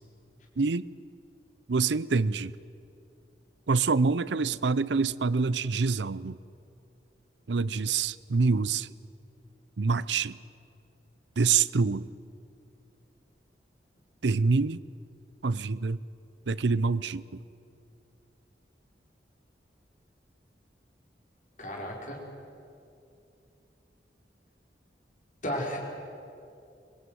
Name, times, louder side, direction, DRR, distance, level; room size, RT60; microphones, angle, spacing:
voice 1, 0.6-0.9 1.7-2.5 3.7-6.4 7.5-8.9 9.8-10.4 11.4-12.1 14.2-14.8 15.4-16.0 16.5-17.4, right 4 dB, 80° right, 0.6 m, -26 dB
voice 2, 21.6-22.2 25.4-25.8, equal, 45° left, 5.1 m, -33 dB
25.0 x 21.0 x 9.5 m
head